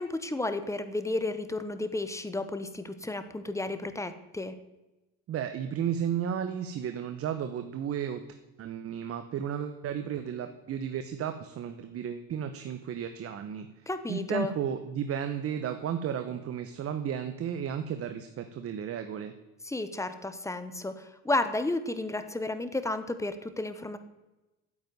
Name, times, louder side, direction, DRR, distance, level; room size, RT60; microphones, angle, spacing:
voice 1, 0.0-4.5 13.9-14.5 19.6-24.0, left 2 dB, 10° left, 11 dB, 1.1 m, -32 dB
voice 2, 5.3-8.2 8.6-19.3, right 8 dB, 45° right, 8 dB, 1.1 m, -33 dB
9.4 x 8.0 x 9.5 m, 1.0 s
supercardioid pair, 100°, 32 cm